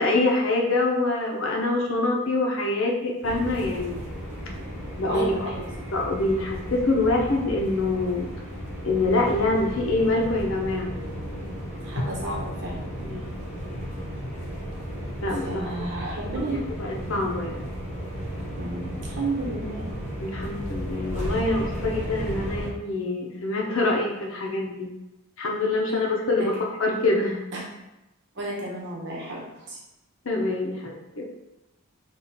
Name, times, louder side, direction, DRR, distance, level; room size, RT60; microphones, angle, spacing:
voice 1, 0.0-4.0 5.0-5.5 5.9-8.3 8.8-10.9 12.0-12.1 13.0-13.2 15.2-15.7 16.5-17.6 20.2-24.9 25.4-26.5 26.8-27.4 30.3-31.2, left 2 dB, 60° left, 0 dB, 0.7 m, -25 dB
sound 1, 3.2-22.7, equal, 30° left, 1.1 m, -34 dB
voice 2, 5.1-5.7 11.8-13.4 15.4-16.6 18.5-19.9 26.4-26.5 27.5-27.6 28.3-29.8, right 2 dB, 55° right, -3 dB, 1.0 m, -32 dB
3.6 x 2.4 x 4.2 m, 0.96 s
head